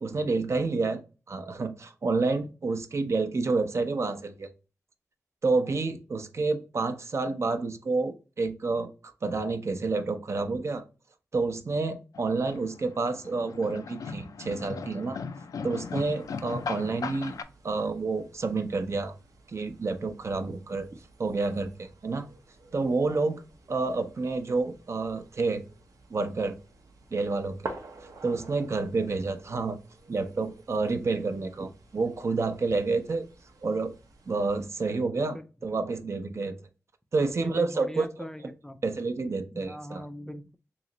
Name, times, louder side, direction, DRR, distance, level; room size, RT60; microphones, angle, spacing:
voice 1, 0.0-1.0 1.3-4.5 5.4-8.9 9.2-10.8 11.3-15.2 15.6-17.4 17.6-19.1 19.5-20.9 21.2-22.3 22.7-23.4 23.7-25.6 26.1-26.6 27.1-27.6 28.2-29.8 30.1-33.2 33.6-33.9 34.3-35.4 35.6-36.6 37.1-38.1 38.8-40.0, right 3 dB, 55° right, 0.5 m, -29 dB
sound 1, 12.1-17.4, left 5 dB, 90° left, 0.4 m, -38 dB
sound 2, 15.8-34.7, right 3 dB, 85° right, 0.7 m, -50 dB
voice 2, 37.2-38.8 39.5-40.6, equal, 10° left, 0.4 m, -41 dB
3.1 x 2.9 x 3.7 m
wide cardioid pair, 80°, 6 cm